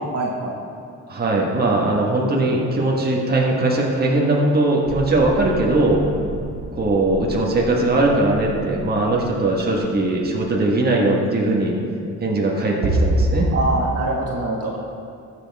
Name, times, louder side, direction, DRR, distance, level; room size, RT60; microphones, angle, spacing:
voice 1, 0.1-0.6 13.5-14.8, right 2 dB, 55° right, -2 dB, 1.6 m, -24 dB
voice 2, 1.1-6.0 6.7-11.8 12.2-13.5, right 2 dB, 30° right, -3 dB, 1.7 m, -20 dB
sound 1, 4.8-10.3 12.8-13.7, right 1 dB, 80° right, 1.6 m, -27 dB
14.0 x 6.4 x 3.7 m, 2.4 s
cardioid pair, 90°, 30 cm